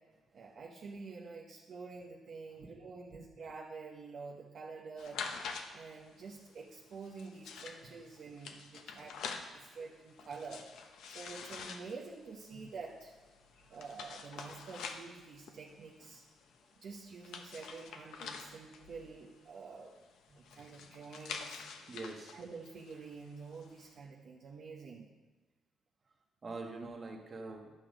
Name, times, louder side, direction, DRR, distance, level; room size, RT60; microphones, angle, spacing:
voice 1, 0.3-5.2 5.7-9.2 9.5-10.7 11.1-13.1 13.7-16.2 16.8-20.0 20.3-21.7 22.3-25.1, right 4 dB, 60° right, -3 dB, 1.0 m, -48 dB
sound 1, 5.0-23.9, left 5 dB, 80° left, 0.9 m, -48 dB
voice 2, 21.9-22.4 26.4-27.7, right 3 dB, 35° right, 2 dB, 1.6 m, -45 dB
11.0 x 6.0 x 5.2 m, 1.3 s
cardioid pair, 90°, 0 cm